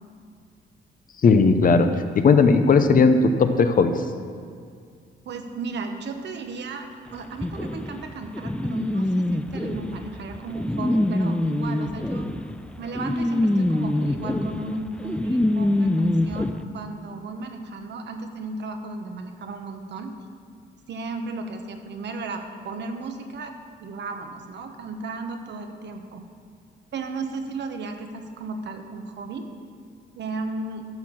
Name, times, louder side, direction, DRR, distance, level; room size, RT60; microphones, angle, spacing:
voice 1, 1.2-1.9 2.1-3.9, left 4 dB, 45° left, 8 dB, 0.8 m, -17 dB
voice 2, 5.2-12.3 12.8-20.1 20.9-23.5 23.8-26.2 26.9-29.5 30.2-30.9, right 3 dB, 60° right, 5 dB, 1.1 m, -34 dB
sound 1, 7.4-16.5, left 1 dB, 5° left, 0.4 m, -25 dB
12.0 x 4.4 x 7.3 m, 2.1 s
cardioid pair, 90°, 20 cm